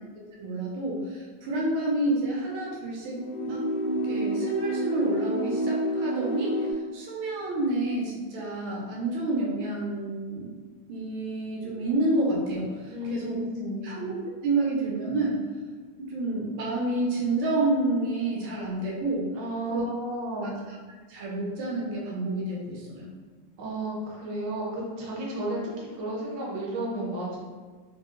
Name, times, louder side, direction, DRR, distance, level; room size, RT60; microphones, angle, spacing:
voice 1, 0.4-6.5 6.9-10.5 10.9-13.4 13.8-15.4 16.1-19.3 19.7-19.8 21.1-23.1, right 2 dB, 90° right, -4 dB, 1.6 m, -29 dB
sound 1, 3.1-6.7, right 1 dB, 90° left, 1.5 m, -28 dB
voice 2, 12.8-13.9 19.3-20.6 23.6-27.4, right 1 dB, 60° right, -4 dB, 1.1 m, -33 dB
3.3 x 2.8 x 2.4 m, 1.4 s
omnidirectional pair, 2.2 m